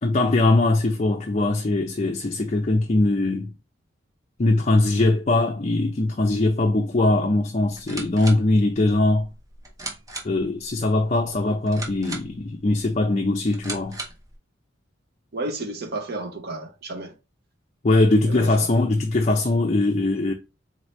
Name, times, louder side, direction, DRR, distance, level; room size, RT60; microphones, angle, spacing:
voice 1, 0.0-3.5 4.4-9.3 10.2-14.0 17.8-20.3, left 2 dB, 35° left, 0.4 m, -21 dB
sound 1, 7.6-14.4, right 2 dB, 15° right, 0.7 m, -39 dB
voice 2, 15.3-17.1 18.3-18.5, right 2 dB, 55° right, 0.8 m, -32 dB
4.0 x 3.0 x 3.1 m
head